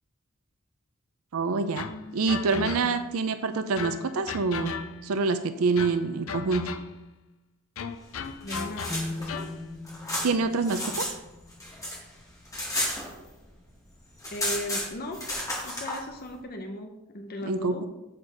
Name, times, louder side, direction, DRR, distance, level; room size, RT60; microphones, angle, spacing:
voice 1, 1.3-1.9 2.1-4.7 5.0-6.6 10.2-11.1 17.4-17.7, right 4 dB, 80° right, 9 dB, 0.5 m, -26 dB
sound 1, 1.8-3.2 3.8-5.2 5.8-7.1 7.8-9.6, left 5 dB, 70° left, 0.5 m, -36 dB
sound 2, 8.2-11.1 11.4-13.6 13.9-14.0 14.2-16.0, left 1 dB, 15° left, 2.1 m, -32 dB
voice 2, 8.4-9.4 14.3-15.2 15.6-17.8, left 1 dB, 45° left, 5 dB, 0.8 m, -37 dB
sound 3, 8.9-12.8, left 2 dB, ahead, 0.8 m, -40 dB
7.9 x 4.4 x 5.1 m, 0.96 s
head